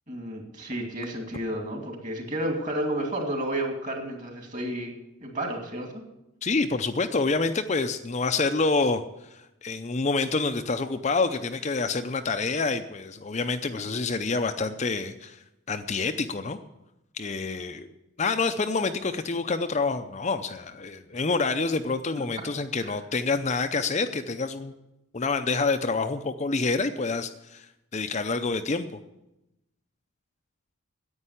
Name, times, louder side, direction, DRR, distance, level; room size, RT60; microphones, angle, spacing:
voice 1, 0.1-4.9 5.2-6.0 22.8-22.9, right 1 dB, 35° right, 2 dB, 2.5 m, -31 dB
voice 2, 6.4-9.0 9.3-15.4 15.7-16.6 17.1-17.9 18.2-24.7 25.1-28.9, left 3 dB, 35° left, 8 dB, 0.5 m, -27 dB
10.0 x 8.8 x 9.7 m, 0.92 s
head